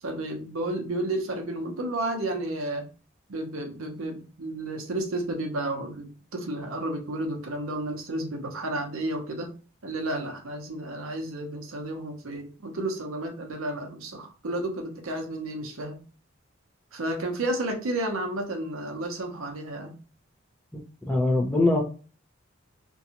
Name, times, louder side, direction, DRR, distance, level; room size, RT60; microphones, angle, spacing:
voice 1, 0.0-2.9 3.3-9.5 9.8-16.0 16.9-19.9, right 1 dB, 75° right, 3 dB, 0.7 m, -32 dB
voice 2, 20.7-21.8, left 2 dB, 5° left, 0 dB, 0.5 m, -23 dB
2.6 x 2.3 x 2.8 m, 0.36 s
head